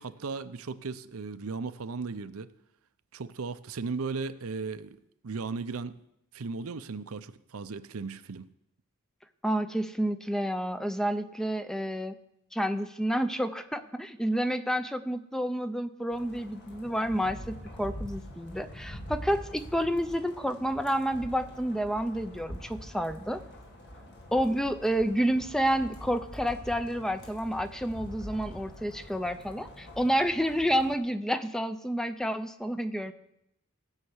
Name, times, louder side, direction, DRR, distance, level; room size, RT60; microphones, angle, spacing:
voice 1, 0.0-2.5 3.1-6.0 6.3-8.5, right 4 dB, 85° right, 12 dB, 0.6 m, -36 dB
voice 2, 9.4-12.1 12.5-23.4 24.3-33.1, equal, 5° left, 10 dB, 0.5 m, -29 dB
sound 1, 16.1-30.9, equal, 55° left, 2.0 m, -45 dB
16.0 x 5.8 x 8.0 m, 0.83 s
head